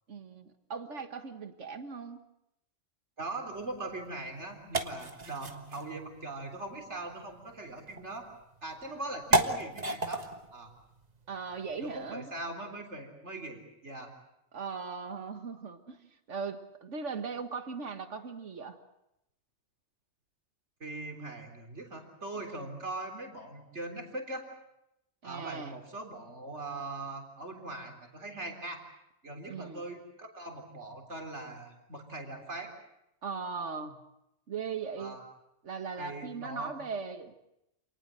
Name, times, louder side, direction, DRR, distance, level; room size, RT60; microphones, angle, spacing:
voice 1, 0.1-2.2 11.3-12.3 14.5-18.8 22.5-22.7 25.2-25.8 29.5-29.9 33.2-34.0 34.5-35.2 35.6-37.3, right 5 dB, 90° right, 8 dB, 1.9 m, -39 dB
voice 2, 3.2-8.3 8.6-10.2 10.5-10.7 11.8-14.2 20.8-24.4 25.2-28.8 29.2-32.7 35.0-35.2 36.0-36.8, right 2 dB, 70° right, 4 dB, 4.1 m, -41 dB
sound 1, 3.5-12.1, right 1 dB, 35° right, 1.6 m, -36 dB
27.5 x 19.0 x 7.8 m, 0.83 s
omnidirectional pair, 1.2 m